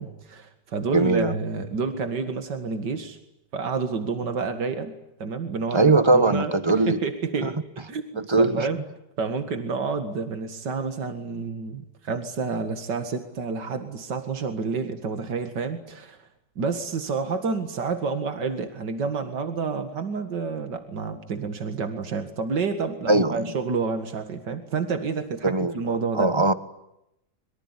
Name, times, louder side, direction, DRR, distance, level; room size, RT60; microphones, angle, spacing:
voice 1, 0.0-3.2 3.5-7.5 7.9-8.8 9.2-16.2 16.6-26.3, right 4 dB, 85° right, 2.6 m, -29 dB
voice 2, 0.9-1.3 5.7-7.0 7.4-7.5 8.2-8.7 23.1-23.4 25.4-25.7 26.1-26.5, right 2 dB, 20° right, 1.3 m, -20 dB
25.0 x 23.5 x 9.8 m
omnidirectional pair, 1.8 m